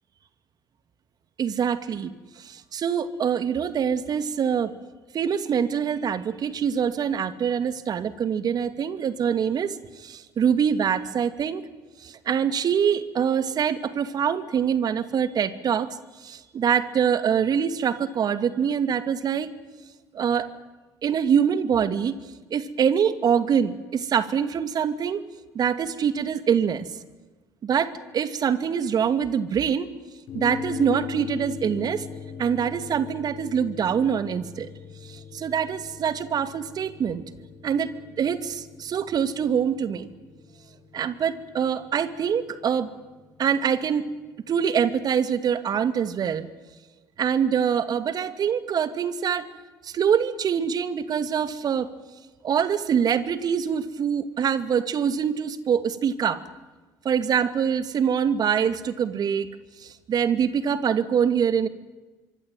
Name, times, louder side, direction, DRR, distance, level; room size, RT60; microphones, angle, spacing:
voice 1, 1.4-4.7 5.1-11.6 12.0-19.5 20.1-20.5 21.0-22.1 22.5-25.2 25.5-26.9 27.6-29.9 30.3-32.1 32.4-34.7 35.0-37.2 37.6-37.9 38.2-40.1 40.9-42.9 43.4-44.1 44.5-46.5 47.2-49.5 49.8-51.9 52.4-56.4 57.0-59.5 59.8-61.7, right 7 dB, 50° right, 12 dB, 2.3 m, -24 dB
sound 1, 30.3-44.8, left 6 dB, 65° left, 5.4 m, -41 dB
25.5 x 24.5 x 9.2 m, 1.2 s
hypercardioid pair, 65°, 9 cm